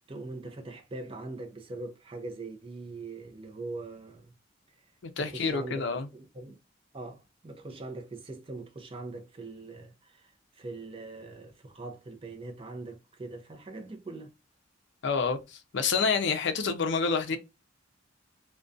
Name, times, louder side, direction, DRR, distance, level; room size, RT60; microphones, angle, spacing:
voice 1, 0.1-4.3 4.8-4.9 5.2-6.6 6.9-14.3, right 2 dB, 30° right, 0.5 m, -42 dB
voice 2, 5.2-6.1 15.0-17.4, left 5 dB, 60° left, 0.4 m, -28 dB
2.4 x 2.2 x 2.4 m
head